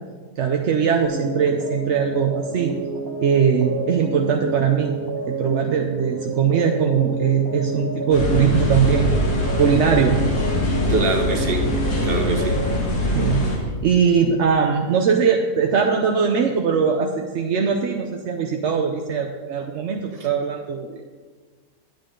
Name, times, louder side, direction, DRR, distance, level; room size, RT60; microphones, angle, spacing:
voice 1, 0.4-2.7 3.2-4.9 5.3-9.1 9.6-10.2 13.1-20.9, right 7 dB, 60° right, 2 dB, 0.8 m, -20 dB
sound 1, 1.0-12.7, right 2 dB, 15° right, 1.0 m, -30 dB
sound 2, 8.1-13.6, left 1 dB, 70° left, 2.1 m, -23 dB
voice 2, 10.9-11.7 12.0-12.6 20.9-21.0, right 3 dB, 40° right, 3 dB, 1.2 m, -24 dB
10.5 x 9.1 x 3.8 m, 1.5 s
omnidirectional pair, 1.8 m